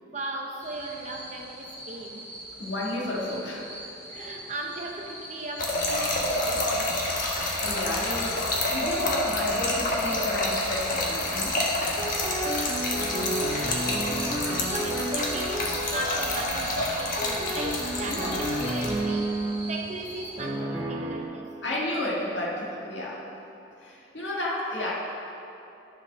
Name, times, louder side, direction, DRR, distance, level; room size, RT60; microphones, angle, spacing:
voice 1, 0.1-2.3 4.1-7.0 13.3-15.6 15.9-19.4 19.7-21.5, right 2 dB, 35° right, 2 dB, 0.7 m, -38 dB
sound 1, 0.6-20.5, equal, 10° left, 1.6 m, -42 dB
voice 2, 2.6-3.8 7.6-12.1 18.1-18.3 21.6-23.2 23.8-24.9, left 1 dB, 65° left, -4 dB, 1.7 m, -32 dB
Trickle dribble / Fill (with liquid), 5.6-19.0, left 2 dB, 45° left, 1.3 m, -28 dB
sound 2, 11.8-19.8 20.4-21.2, right 1 dB, 20° right, 1.1 m, -31 dB
11.0 x 4.8 x 5.9 m, 2.8 s
head